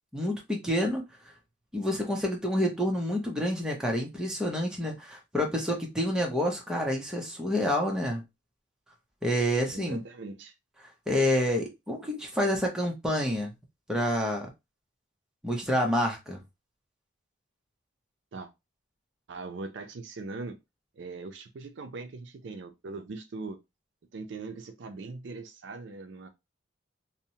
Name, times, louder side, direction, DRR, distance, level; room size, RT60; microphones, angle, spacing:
voice 1, 0.1-1.0 1.7-8.2 9.2-10.0 11.1-13.5 13.9-14.5 15.4-16.4, equal, 5° right, 0.6 m, -28 dB
voice 2, 9.7-10.5 18.3-18.5 19.3-20.6 21.0-23.6 24.1-26.3, right 3 dB, 65° right, 0.4 m, -40 dB
2.8 x 2.0 x 2.7 m
head